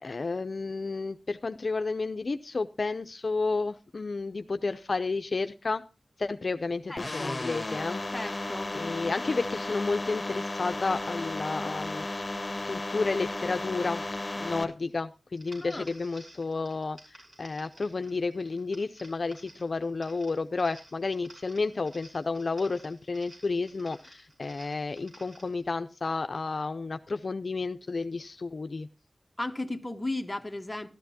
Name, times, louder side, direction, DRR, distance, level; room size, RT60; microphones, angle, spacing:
voice 1, 0.0-5.8 6.2-8.0 8.7-12.3 12.6-14.0 14.4-28.9, left 3 dB, 65° left, 0.5 m, -31 dB
voice 2, 6.9-7.4 8.1-8.7 15.6-15.9 29.4-30.9, left 2 dB, 20° left, 1.1 m, -35 dB
sound 1, 7.0-14.6, left 2 dB, 35° left, 1.7 m, -34 dB
sound 2, 15.3-25.6, right 1 dB, 60° right, 6.1 m, -54 dB
13.5 x 12.5 x 2.8 m
wide cardioid pair, 75°, 0 cm